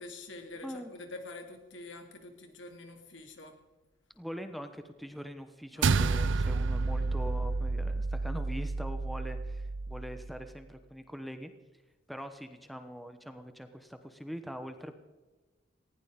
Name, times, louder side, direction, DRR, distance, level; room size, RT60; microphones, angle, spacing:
voice 1, 0.0-3.6 5.7-6.6, left 2 dB, 75° left, 5 dB, 2.5 m, -47 dB
voice 2, 4.2-11.5 12.1-15.0, equal, ahead, 7 dB, 1.0 m, -43 dB
sound 1, 5.8-10.4, right 3 dB, 75° right, 0.5 m, -30 dB
19.5 x 16.0 x 3.7 m, 1.3 s
head